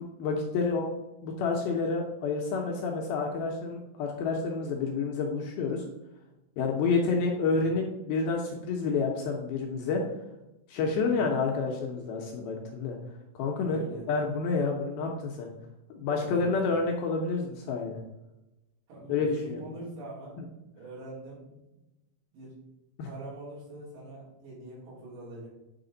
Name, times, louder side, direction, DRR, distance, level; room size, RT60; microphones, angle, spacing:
voice 1, 0.2-0.9 1.2-5.8 6.6-10.0 10.7-13.0 13.4-13.8 14.1-15.5 15.9-18.0 19.1-19.6 23.0-23.1, left 4 dB, 75° left, 0 dB, 2.3 m, -29 dB
voice 2, 13.6-14.1 16.1-16.6 18.9-20.4 20.8-21.8 22.3-22.6 23.0-25.5, right 2 dB, 80° right, -7 dB, 5.4 m, -44 dB
8.7 x 5.0 x 3.9 m, 0.96 s
omnidirectional pair, 5.0 m